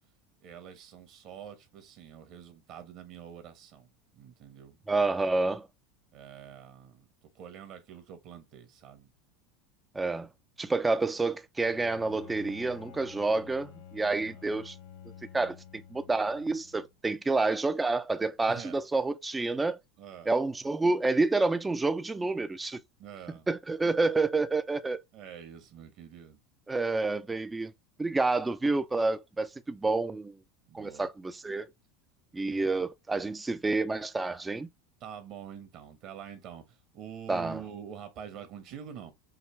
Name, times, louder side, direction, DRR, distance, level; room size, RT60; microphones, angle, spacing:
voice 1, 0.4-5.5 6.1-9.1 14.2-14.4 18.5-18.8 20.0-20.3 23.0-23.5 25.1-26.4 30.7-31.1 35.0-39.1, right 8 dB, 55° right, 1.4 m, -46 dB
voice 2, 4.9-5.7 9.9-10.3 10.6-14.7 15.3-19.8 20.3-22.8 23.5-25.0 26.7-27.7 28.0-30.4 30.7-31.7 32.3-34.7 37.3-37.6, right 3 dB, 15° right, 0.5 m, -29 dB
Bowed string instrument, 11.6-16.9, left 9 dB, 65° left, 1.4 m, -50 dB
5.6 x 2.2 x 3.3 m
hypercardioid pair, 90°, 0 cm